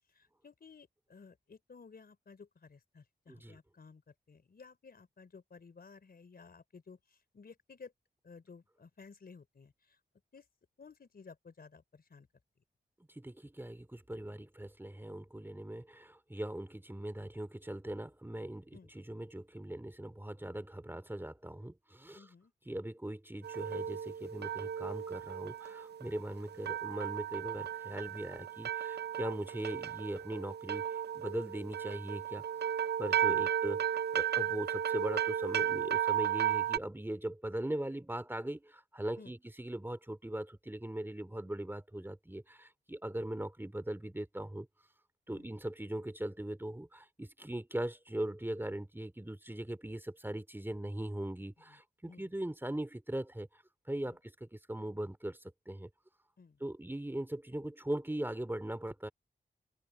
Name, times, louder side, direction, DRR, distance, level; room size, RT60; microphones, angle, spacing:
voice 1, 0.1-7.9 8.2-10.0 10.3-10.5 10.8-12.3 18.7-18.9 22.1-22.5 33.3-33.5 39.2-39.4 45.3-45.5 51.7-51.8 52.1-52.3 54.1-54.2 56.4-56.6, left 5 dB, 60° left, 4.1 m, -55 dB
voice 2, 3.3-3.6 13.1-22.3 22.7-32.4 33.0-44.7 45.3-53.6 53.9-55.4 55.7-55.9 56.6-59.1, right 1 dB, 10° right, 2.7 m, -40 dB
sound 1, 23.4-36.8, right 10 dB, 65° right, 0.5 m, -34 dB
open air
cardioid pair, 75°, 18 cm